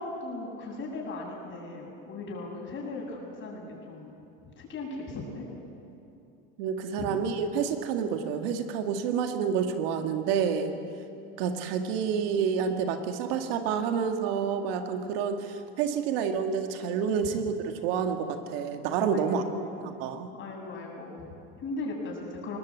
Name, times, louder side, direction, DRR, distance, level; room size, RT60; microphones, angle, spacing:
voice 1, 0.0-4.1 4.4-5.5 7.0-7.1 19.1-19.6 20.3-22.6, left 3 dB, 40° left, -1 dB, 7.8 m, -38 dB
voice 2, 6.6-10.7 11.4-19.4 19.8-20.3, right 7 dB, 75° right, 6 dB, 1.9 m, -29 dB
21.5 x 19.0 x 8.6 m, 2.7 s
supercardioid pair, 105°, 30 cm